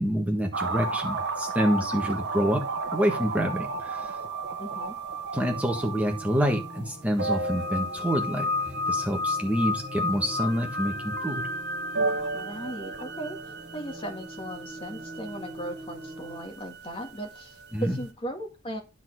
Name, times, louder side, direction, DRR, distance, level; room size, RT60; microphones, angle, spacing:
voice 1, 0.0-2.6 2.9-4.2 5.3-11.4 17.7-18.0, equal, 5° right, 2 dB, 1.4 m, -27 dB
sound 1, 0.5-17.7 18.0-18.1, right 1 dB, 55° right, 1.0 m, -32 dB
voice 2, 4.6-5.0 12.3-13.4 13.7-18.8, right 1 dB, 25° left, 3 dB, 1.9 m, -37 dB
sound 2, 5.4-16.4, equal, 30° right, 6.2 m, -44 dB
10.5 x 4.1 x 6.2 m, 0.27 s
head